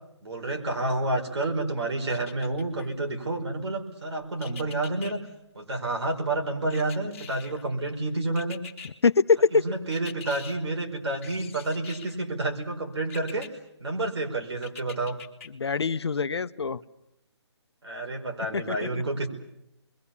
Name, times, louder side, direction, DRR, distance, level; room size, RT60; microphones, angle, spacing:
voice 1, 0.2-5.2 5.5-8.6 9.5-13.5 13.8-15.2 17.8-19.3, right 2 dB, 70° right, 2 dB, 5.1 m, -29 dB
sound 1, 2.1-2.9 4.4-5.1 6.7-7.7 8.4-8.9 9.9-10.5 11.2-12.2 13.1-13.5 14.6-15.5 15.9-16.0, left 6 dB, 30° left, 1.9 m, -44 dB
voice 2, 8.8-9.6 15.5-16.8 18.5-18.9, left 5 dB, 65° left, 13 dB, 0.9 m, -24 dB
28.0 x 22.5 x 7.1 m, 0.83 s
hypercardioid pair, 175°, 15 cm